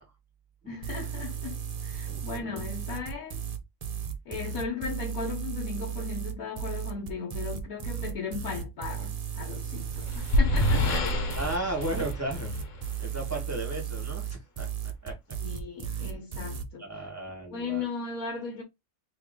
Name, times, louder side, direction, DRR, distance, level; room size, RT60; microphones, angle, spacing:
voice 1, 0.7-3.4 4.3-11.1 15.4-16.8 17.5-18.6, left 5 dB, 90° left, 1.4 m, -37 dB
sound 1, 0.8-16.7, right 8 dB, 55° right, 0.4 m, -35 dB
voice 2, 2.1-2.6 11.3-12.5 13.0-15.2 15.8-16.1 16.8-17.9, right 1 dB, 10° right, 1.2 m, -35 dB
sound 2, 9.5-13.2, left 1 dB, 70° left, 1.3 m, -27 dB
3.0 x 3.0 x 3.5 m
omnidirectional pair, 1.4 m